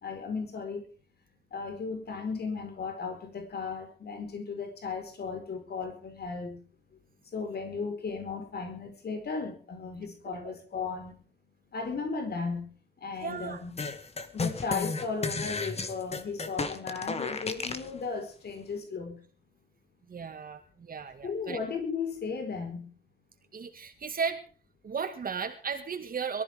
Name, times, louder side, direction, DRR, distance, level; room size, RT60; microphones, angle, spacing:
voice 1, 0.0-0.8 1.5-6.6 7.3-11.1 11.7-12.7 13.0-13.8 14.3-19.2 21.2-22.9, left 5 dB, 65° left, 4 dB, 4.6 m, -35 dB
voice 2, 13.2-13.6 20.1-21.6 23.5-24.4 24.8-26.4, right 6 dB, 55° right, 5 dB, 2.0 m, -35 dB
sound 1, 13.8-17.9, left 4 dB, 35° left, 1.8 m, -33 dB
23.5 x 14.0 x 3.6 m, 0.39 s
wide cardioid pair, 170°, 18 cm